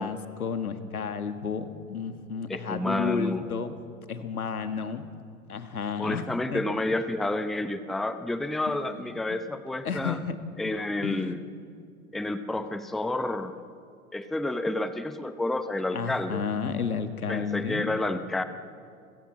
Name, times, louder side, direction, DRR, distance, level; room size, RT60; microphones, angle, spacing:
voice 1, 0.0-3.8 4.1-5.1 5.5-6.2 6.5-6.6 8.7-8.8 9.8-10.4 11.0-11.5 15.9-17.9, left 6 dB, 80° left, 9 dB, 1.7 m, -32 dB
voice 2, 2.5-3.5 6.0-10.2 10.6-11.4 12.1-13.6 14.1-16.4 17.3-18.4, left 2 dB, ahead, 11 dB, 0.7 m, -30 dB
28.5 x 16.5 x 7.3 m, 2.3 s
figure-of-eight pair, 105°, 43 cm